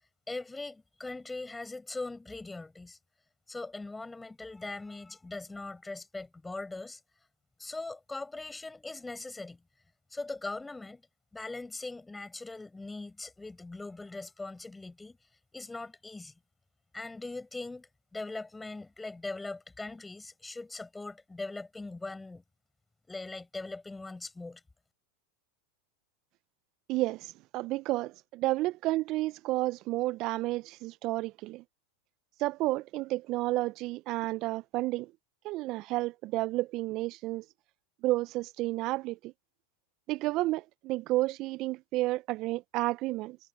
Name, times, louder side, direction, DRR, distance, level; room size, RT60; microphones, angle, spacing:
voice 1, 0.3-3.0 3.5-7.0 7.6-9.6 10.1-11.0 11.3-15.2 15.5-16.3 16.9-22.4 23.1-24.6, left 3 dB, 10° left, 5.2 m, -41 dB
voice 2, 26.9-31.6 32.4-35.1 35.4-37.5 38.0-39.3 40.1-43.4, right 18 dB, 50° right, 0.3 m, -31 dB
hypercardioid pair, 105°, 0 cm